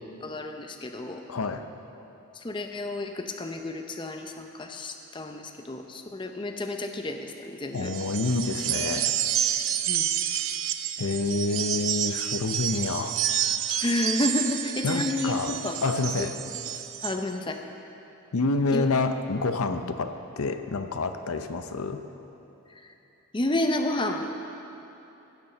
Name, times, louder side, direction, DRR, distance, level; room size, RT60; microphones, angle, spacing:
voice 1, 0.2-1.2 2.3-7.9 9.9-10.1 13.8-15.8 16.2-16.3 17.0-17.6 18.7-18.8 22.8-22.9 23.3-24.3, left 1 dB, 20° left, 4 dB, 0.6 m, -30 dB
voice 2, 1.3-1.7 7.7-9.1 11.0-13.2 14.8-16.4 18.3-22.0, left 3 dB, 90° left, 8 dB, 0.7 m, -28 dB
sound 1, 7.8-17.2, right 10 dB, 70° right, 0.6 m, -29 dB
16.0 x 7.0 x 6.6 m, 3.0 s
head